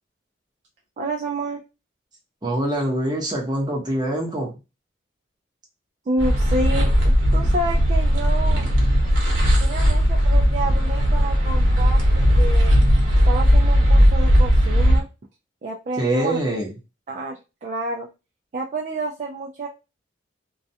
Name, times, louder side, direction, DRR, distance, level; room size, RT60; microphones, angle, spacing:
voice 1, 1.0-1.6 6.1-8.7 9.6-12.0 12.4-12.8 13.3-15.1 15.6-16.4 17.1-18.1 18.5-19.7, right 2 dB, 40° right, 1 dB, 0.3 m, -29 dB
voice 2, 2.4-4.5 16.0-16.8, right 1 dB, 20° right, -2 dB, 0.8 m, -24 dB
sound 1, 6.2-15.0, equal, 85° right, 0.9 m, -17 dB
2.3 x 2.1 x 2.7 m, 0.27 s
head